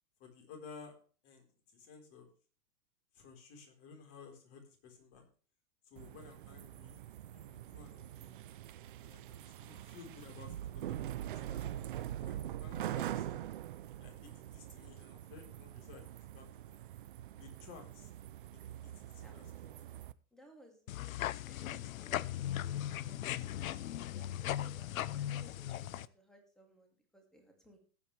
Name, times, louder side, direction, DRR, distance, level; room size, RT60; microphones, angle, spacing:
voice 1, 0.2-0.9 1.2-2.3 3.1-5.2 5.8-7.0 7.3-8.3 9.0-13.4 14.0-16.8 17.4-18.1 18.8-19.5, left 5 dB, 30° left, 3 dB, 4.1 m, -55 dB
sound 1, 6.0-20.1, right 12 dB, 35° right, 0.5 m, -44 dB
voice 2, 20.3-21.1 21.4-27.8, equal, ahead, 2 dB, 2.4 m, -61 dB
sound 2, 20.9-26.1, left 12 dB, 60° left, 0.8 m, -38 dB
18.5 x 8.6 x 3.3 m, 0.40 s
hypercardioid pair, 165°, 45 cm